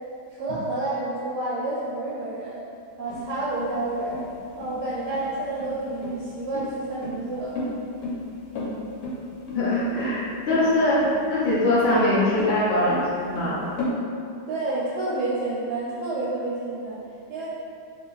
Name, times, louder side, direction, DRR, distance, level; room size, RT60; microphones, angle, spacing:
voice 1, 0.3-2.6 3.0-4.2 4.5-7.5 12.2-12.4 14.5-17.0 17.3-17.5, right 2 dB, 75° right, -7 dB, 1.1 m, -29 dB
sound 1, 3.1-13.9, left 1 dB, 65° left, 1.1 m, -33 dB
voice 2, 9.5-11.0 11.3-13.6, left 1 dB, 80° left, -8 dB, 0.5 m, -22 dB
2.8 x 2.5 x 3.8 m, 2.5 s
omnidirectional pair, 1.9 m